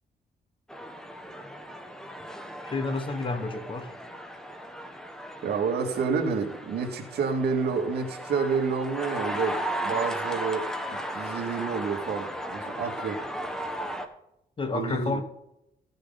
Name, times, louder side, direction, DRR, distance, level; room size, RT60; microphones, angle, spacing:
sound 1, 0.7-14.1, equal, 5° left, 1.2 m, -36 dB
voice 1, 2.6-3.9 14.6-15.2, left 3 dB, 30° left, 1.3 m, -30 dB
voice 2, 5.4-9.6 9.8-10.6 11.1-13.2 14.7-15.2, right 5 dB, 80° right, 2.2 m, -29 dB
16.0 x 6.7 x 4.1 m
cardioid pair, 115°, 17 cm